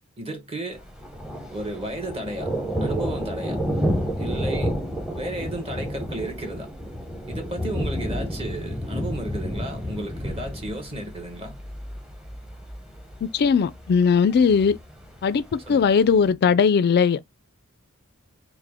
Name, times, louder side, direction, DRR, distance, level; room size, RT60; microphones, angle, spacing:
voice 1, 0.2-0.8 1.5-2.5 2.8-3.6 4.2-4.8 5.1-6.7 7.3-11.6 15.7-15.8, right 1 dB, 25° right, 1.0 m, -33 dB
Thunder, 0.7-16.3, equal, 5° right, 0.7 m, -31 dB
voice 2, 13.2-14.8 15.2-17.2, left 6 dB, 50° left, 0.3 m, -19 dB
4.7 x 2.1 x 3.5 m
head